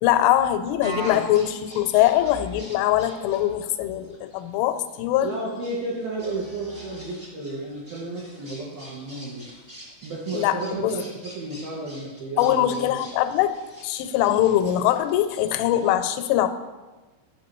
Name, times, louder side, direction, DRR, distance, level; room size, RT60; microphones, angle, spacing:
voice 1, 0.0-5.3 10.3-10.9 12.4-13.6 13.8-16.5, left 12 dB, 90° left, 9 dB, 3.1 m, -22 dB
sound 1, 0.8-15.9, equal, 50° right, 0.8 m, -42 dB
voice 2, 5.2-9.5 10.0-13.0, right 2 dB, 75° right, -4 dB, 2.2 m, -32 dB
12.0 x 6.4 x 3.0 m, 1.2 s
omnidirectional pair, 5.5 m